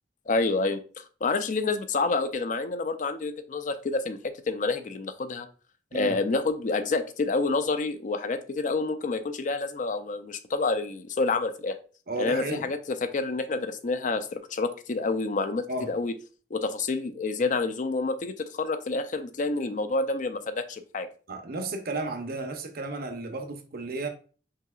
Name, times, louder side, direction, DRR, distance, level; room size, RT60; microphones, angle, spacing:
voice 1, 0.3-4.2 4.5-5.5 5.9-11.7 12.2-16.1 16.5-21.1, left 3 dB, 45° left, 0.4 m, -28 dB
voice 2, 12.1-12.7 15.7-15.9 21.3-24.1, right 2 dB, 55° right, 0.7 m, -33 dB
5.7 x 2.8 x 2.3 m
head